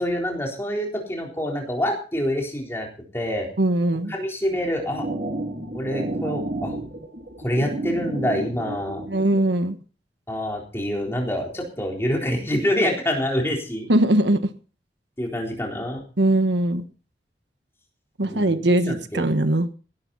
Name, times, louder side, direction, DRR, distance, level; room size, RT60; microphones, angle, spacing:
voice 1, 0.0-2.9 3.1-3.5 4.1-5.1 5.7-6.8 7.4-9.0 10.3-13.9 15.2-16.0 18.2-19.3, equal, 15° left, 0 dB, 3.8 m, -26 dB
voice 2, 3.6-4.1 9.1-9.8 13.9-14.5 16.2-16.8 18.2-19.7, right 1 dB, 85° right, 9 dB, 1.3 m, -20 dB
sound 1, 4.5-9.5, right 1 dB, 50° right, 2.5 m, -31 dB
17.0 x 12.0 x 4.1 m, 0.38 s
head